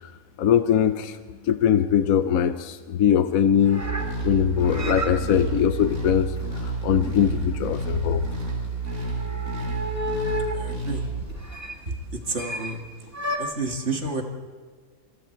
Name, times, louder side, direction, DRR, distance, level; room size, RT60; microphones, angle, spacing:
voice 1, 0.4-1.2 1.5-3.8 4.2-6.3 6.8-8.2, left 8 dB, 75° left, 10 dB, 1.2 m, -21 dB
sound 1, 3.6-10.7 11.4-11.8 12.3-12.8 13.1-13.4, left 1 dB, 10° right, 2.0 m, -34 dB
sound 2, 3.8-11.3, right 3 dB, 75° right, 5.5 m, -30 dB
voice 2, 10.5-11.1 11.8-11.9 12.3-12.8 13.4-14.2, right 3 dB, 50° right, 3 dB, 2.3 m, -30 dB
27.5 x 23.5 x 4.5 m, 1.5 s
omnidirectional pair, 1.5 m